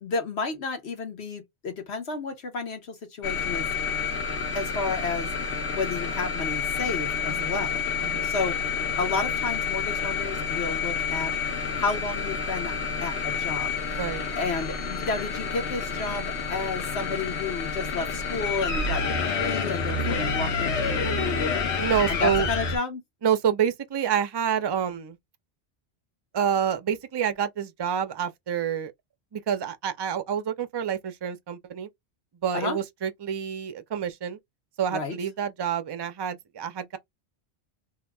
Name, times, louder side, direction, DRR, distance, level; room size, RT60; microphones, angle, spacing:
voice 1, 0.0-3.7 4.5-7.8 8.2-8.6 9.0-11.3 11.7-12.7 13.0-14.0 14.4-23.0 32.5-32.8 34.9-35.2, left 4 dB, 75° left, 1.3 m, -32 dB
sound 1, 3.2-22.8, left 5 dB, 90° left, 1.1 m, -29 dB
voice 2, 13.9-14.2 21.8-22.5 23.2-25.2 26.3-28.9 29.3-31.9 32.4-34.4 34.8-37.0, right 8 dB, 40° right, 0.3 m, -28 dB
2.8 x 2.4 x 3.3 m
omnidirectional pair, 1.1 m